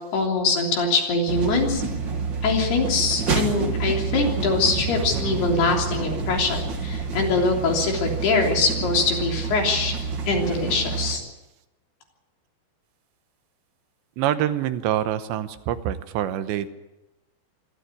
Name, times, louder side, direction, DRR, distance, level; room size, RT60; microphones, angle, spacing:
voice 1, 0.1-1.8 2.4-9.9 10.3-11.2, left 3 dB, 65° left, 1 dB, 5.2 m, -23 dB
sound 1, 1.3-11.2, right 5 dB, 70° right, 1.1 m, -28 dB
sound 2, 4.2-7.4, right 2 dB, 55° right, 2.2 m, -34 dB
voice 2, 14.2-16.7, right 11 dB, 90° right, 11 dB, 3.2 m, -25 dB
25.5 x 13.5 x 8.4 m, 1.0 s
omnidirectional pair, 5.1 m